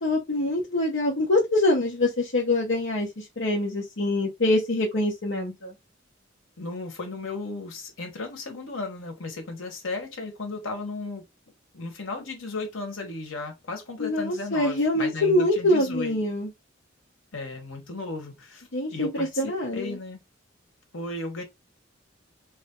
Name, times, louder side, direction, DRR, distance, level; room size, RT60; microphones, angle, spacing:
voice 1, 0.0-5.7 14.0-16.5 18.7-20.0, left 1 dB, 65° left, 1.0 m, -25 dB
voice 2, 6.6-11.2 11.7-16.1 17.3-20.2 20.9-21.4, left 3 dB, 85° left, 1.3 m, -35 dB
3.2 x 2.6 x 3.7 m
head